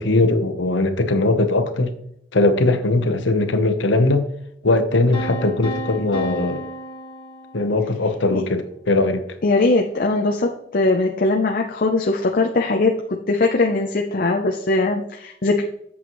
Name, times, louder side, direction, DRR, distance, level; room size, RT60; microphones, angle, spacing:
voice 1, 0.0-1.9 2.3-4.2 4.6-6.6 7.5-9.2, left 2 dB, 70° left, 0.9 m, -19 dB
sound 1, 5.1-8.0, equal, 25° left, 1.5 m, -32 dB
voice 2, 9.4-15.6, left 2 dB, 45° left, 0.6 m, -20 dB
8.5 x 7.2 x 3.1 m
head